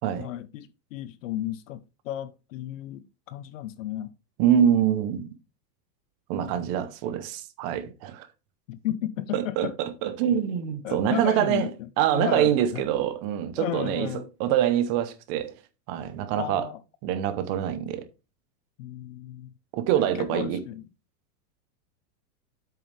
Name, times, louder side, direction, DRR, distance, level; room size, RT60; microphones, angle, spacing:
voice 1, 0.2-4.1 6.4-6.7 8.7-9.7 10.3-10.4 10.8-11.7 12.1-12.9 13.6-14.3 16.4-16.8 18.8-19.5 19.9-20.9, left 12 dB, 50° left, 0.7 m, -34 dB
voice 2, 4.4-5.3 6.3-8.3 9.3-15.5 15.9-16.7 17.0-18.1 19.7-20.6, right 10 dB, 25° right, 0.8 m, -25 dB
8.3 x 6.6 x 3.3 m
supercardioid pair, 165°, 50 cm